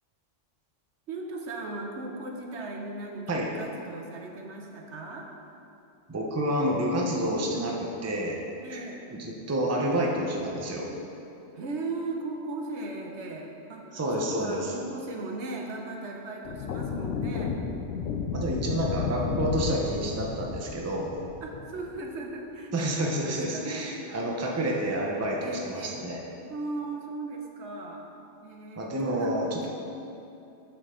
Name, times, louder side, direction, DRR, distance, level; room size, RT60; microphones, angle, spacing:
voice 1, 1.1-5.3 8.6-9.0 11.5-17.6 21.4-23.7 24.1-24.3 25.4-26.0 26.5-28.1 28.4-29.3 29.6-29.7, right 2 dB, 70° right, 1 dB, 1.0 m, -37 dB
voice 2, 6.1-8.4 8.7-8.8 9.1-10.9 13.9-14.7 18.3-21.1 22.7-26.2 28.8-29.7, right 1 dB, 15° right, -2 dB, 0.6 m, -29 dB
sound 1, 16.5-22.1, left 6 dB, 90° left, 0.9 m, -33 dB
7.9 x 6.3 x 3.7 m, 2.8 s
omnidirectional pair, 1.3 m